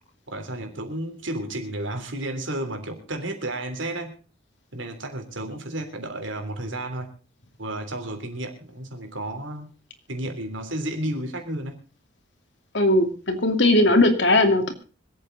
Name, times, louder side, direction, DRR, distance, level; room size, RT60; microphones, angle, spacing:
voice 1, 0.3-4.2 4.7-7.1 7.6-9.7 10.1-11.8, right 1 dB, 85° right, 5 dB, 3.3 m, -32 dB
voice 2, 12.7-14.7, left 1 dB, 70° left, 6 dB, 2.5 m, -19 dB
25.5 x 8.6 x 4.0 m, 0.34 s
head